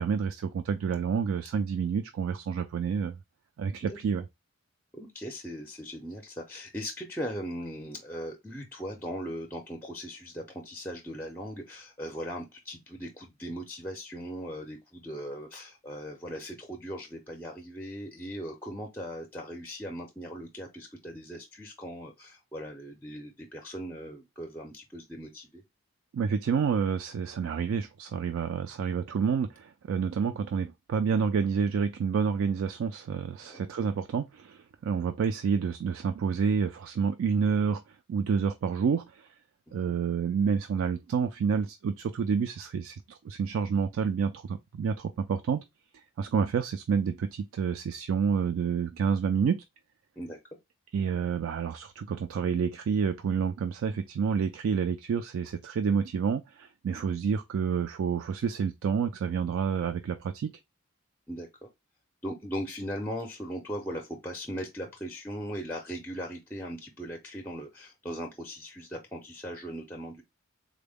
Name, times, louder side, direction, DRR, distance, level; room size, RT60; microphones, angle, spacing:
voice 1, 0.0-3.2 3.6-4.2 26.1-39.3 39.7-45.6 45.9-49.6 50.9-60.5, right 6 dB, 65° right, 0.3 m, -29 dB
voice 2, 4.9-25.6 33.4-33.6 39.7-40.0 50.2-50.4 56.9-57.1 61.3-61.7 62.2-70.2, equal, 10° left, 0.5 m, -39 dB
3.8 x 2.1 x 3.4 m
head